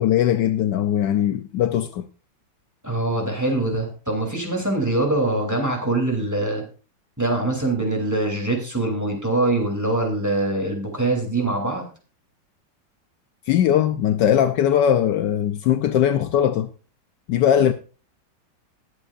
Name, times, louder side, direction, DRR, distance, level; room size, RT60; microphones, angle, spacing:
voice 1, 0.0-2.0 13.5-16.7 17.3-17.7, left 10 dB, 75° left, 1.2 m, -20 dB
voice 2, 2.8-6.6 7.2-11.9, right 2 dB, 10° right, 3.0 m, -23 dB
20.0 x 8.0 x 2.5 m
omnidirectional pair, 2.0 m